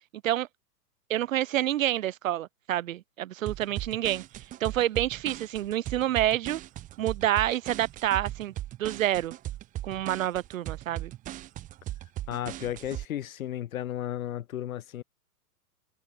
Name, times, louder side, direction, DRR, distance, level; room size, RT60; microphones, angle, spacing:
voice 1, 1.1-4.2 4.6-6.6 7.0-8.5 8.8-9.3 9.8-11.1, right 13 dB, 55° right, 1.5 m, -28 dB
sound 1, 3.5-13.1, right 14 dB, 15° right, 0.8 m, -38 dB
voice 2, 12.3-15.0, left 12 dB, 60° left, 2.0 m, -34 dB
figure-of-eight pair, 110°, 47 cm